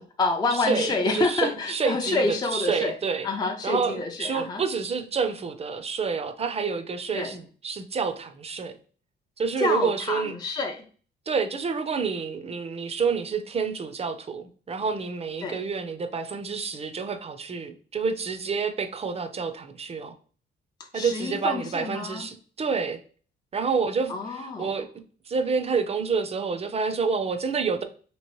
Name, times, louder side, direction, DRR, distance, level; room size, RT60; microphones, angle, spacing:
voice 1, 0.0-3.0 3.2-4.6 7.1-7.4 9.6-10.8 15.4-15.6 20.8-22.3 24.1-24.7, left 3 dB, 20° left, 0.4 m, -28 dB
voice 2, 0.7-2.2 2.5-3.3 3.6-8.8 9.4-10.3 11.3-20.1 20.9-23.0 23.5-24.9 25.3-27.8, right 5 dB, 30° right, 0.5 m, -28 dB
3.0 x 3.0 x 3.0 m
cardioid pair, 90°, 20 cm